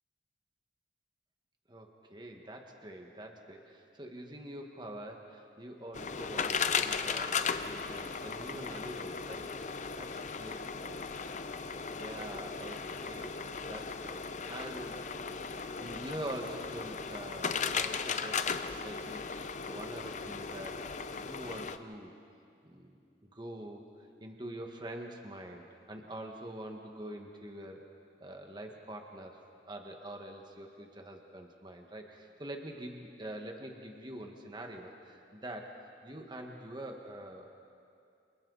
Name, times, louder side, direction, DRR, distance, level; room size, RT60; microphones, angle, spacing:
voice 1, 1.7-11.0 11.8-13.3 13.6-15.0 15.8-20.8 21.1-22.1 22.6-23.0 23.3-23.8 24.2-27.8 28.2-29.4 29.6-37.5, right 1 dB, 25° right, 2 dB, 1.6 m, -45 dB
sound 1, 5.9-21.8, left 5 dB, 45° left, 0.7 m, -36 dB
29.0 x 28.0 x 4.1 m, 2.5 s
head